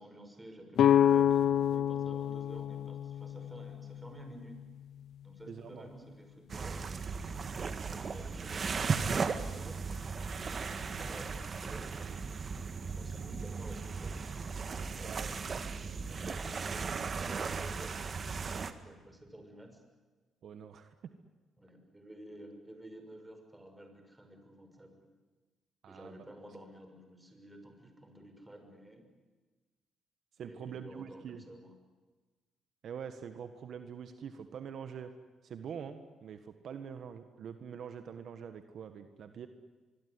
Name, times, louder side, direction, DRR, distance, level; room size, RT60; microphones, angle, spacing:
voice 1, 0.0-4.6 5.2-6.8 7.6-9.8 10.3-12.2 12.9-14.2 15.0-19.8 21.6-25.1 25.9-29.1 30.4-31.7, right 1 dB, 10° right, 5 dB, 6.1 m, -52 dB
sound 1, 0.8-4.6, left 10 dB, 70° left, 0.7 m, -28 dB
voice 2, 5.5-5.9 15.0-15.3 20.4-20.9 25.8-26.3 30.4-31.4 32.8-35.2 35.4-39.5, right 7 dB, 65° right, 8 dB, 1.6 m, -44 dB
sound 2, 6.5-18.7, right 5 dB, 40° right, 1.8 m, -36 dB
24.0 x 23.5 x 9.9 m, 1.3 s
cardioid pair, 90°, 0 cm